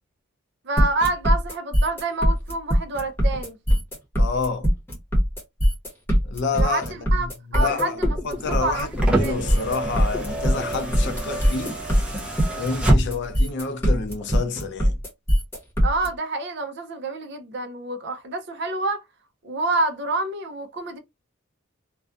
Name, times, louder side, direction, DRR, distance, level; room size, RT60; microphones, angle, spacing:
voice 1, 0.6-3.6 6.5-8.1 8.6-8.9 9.2-9.4 12.5-12.8 15.8-19.0 19.4-21.0, right 2 dB, 50° right, 0.5 m, -27 dB
sound 1, 0.8-16.1, equal, 10° left, 1.0 m, -21 dB
voice 2, 4.2-4.7 6.3-11.8 12.6-15.0, left 4 dB, 55° left, 0.4 m, -29 dB
sound 2, 8.3-13.4 14.7-14.8, right 1 dB, 5° right, 0.6 m, -27 dB
2.4 x 2.2 x 2.4 m
head